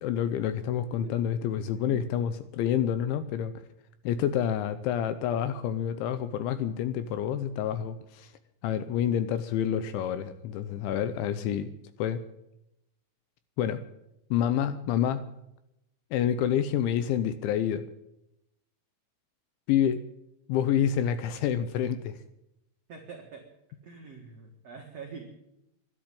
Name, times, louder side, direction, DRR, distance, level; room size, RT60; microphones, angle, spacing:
voice 1, 0.0-3.5 4.1-8.3 8.6-11.7 12.0-12.2 13.6-13.8 14.3-15.3 16.1-17.9 19.7-20.0 20.5-22.2, left 9 dB, 80° left, 12 dB, 2.8 m, -28 dB
voice 2, 22.9-23.4 23.8-25.3, right 5 dB, 75° right, 1 dB, 1.5 m, -44 dB
12.5 x 11.0 x 10.0 m, 0.86 s
omnidirectional pair, 5.9 m